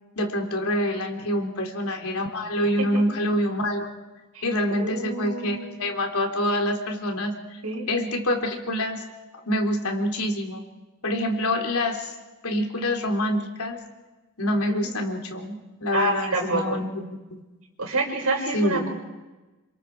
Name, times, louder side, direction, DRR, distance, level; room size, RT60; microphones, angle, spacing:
voice 1, 0.2-3.9 4.4-7.3 7.9-9.0 9.5-10.6 11.0-12.1 12.4-13.8 14.4-17.1 18.5-18.9, left 1 dB, 85° left, 2 dB, 3.5 m, -26 dB
voice 2, 4.3-5.7 7.6-7.9 14.7-14.9 15.9-16.8 17.8-18.9, right 2 dB, 80° right, 0 dB, 6.0 m, -28 dB
28.0 x 27.0 x 4.8 m, 1.1 s
head